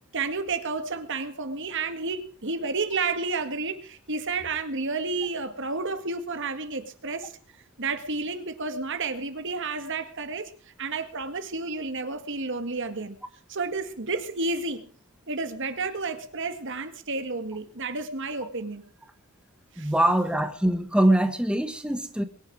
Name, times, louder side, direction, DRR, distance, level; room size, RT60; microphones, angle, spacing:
voice 1, 0.1-7.3 7.8-10.5 10.8-13.2 13.5-14.9 15.3-18.8 19.7-19.9, right 3 dB, 60° right, 1.9 m, -31 dB
voice 2, 19.8-22.2, right 1 dB, 5° right, 1.5 m, -23 dB
22.5 x 11.0 x 4.8 m
head